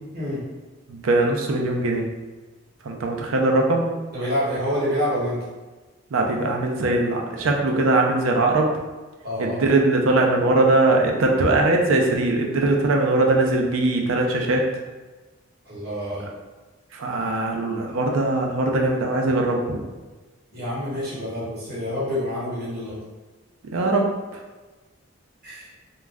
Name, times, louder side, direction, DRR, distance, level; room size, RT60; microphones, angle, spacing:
voice 1, 0.9-2.1 2.8-3.8 6.1-8.7 9.4-14.6 16.9-19.8 23.7-24.1, right 2 dB, 90° right, 1 dB, 0.4 m, -21 dB
voice 2, 4.1-5.4 9.2-9.8 15.6-16.3 20.5-23.0 25.4-25.7, equal, 55° right, -7 dB, 1.0 m, -27 dB
2.3 x 2.1 x 3.3 m, 1.2 s
head